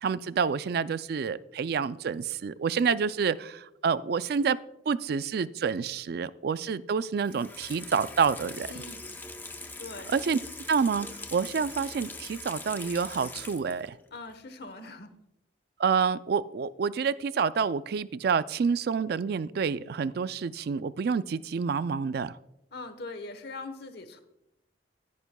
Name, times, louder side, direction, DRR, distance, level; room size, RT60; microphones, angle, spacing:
voice 1, 0.0-4.6 4.9-8.7 10.1-10.4 10.7-14.0 15.8-22.4, right 6 dB, 55° right, 16 dB, 0.3 m, -28 dB
Water tap faucet / Sink (filling or washing), 7.2-13.9 14.3-14.4, left 3 dB, 10° left, 0.6 m, -42 dB
voice 2, 8.7-9.1 9.8-10.1 14.1-15.2 22.7-24.2, left 3 dB, 55° left, 9 dB, 1.0 m, -41 dB
15.5 x 9.3 x 2.2 m, 0.84 s
head